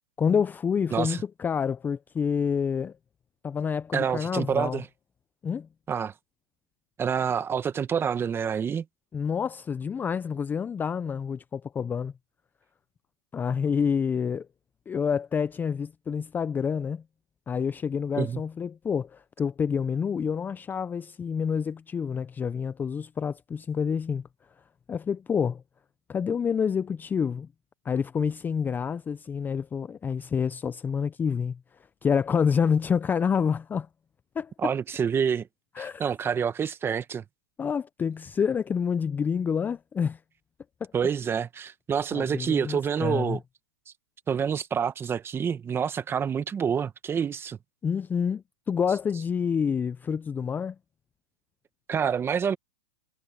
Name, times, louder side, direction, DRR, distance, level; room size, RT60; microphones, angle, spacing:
voice 1, 0.2-2.9 3.4-4.8 5.4-5.7 9.1-12.1 13.3-14.5 14.9-17.0 17.5-24.2 24.9-25.6 26.1-27.5 27.8-31.6 32.0-33.9 34.4-34.7 35.8-36.0 37.6-40.2 42.1-43.4 47.8-50.8, left 6 dB, 15° left, 0.5 m, -28 dB
voice 2, 0.9-1.2 3.9-4.8 5.9-6.1 7.0-8.8 18.2-18.4 34.6-35.5 35.8-37.2 40.9-43.4 44.3-47.6 51.9-52.6, right 7 dB, 20° right, 1.5 m, -27 dB
hypercardioid pair, 125°, 13 cm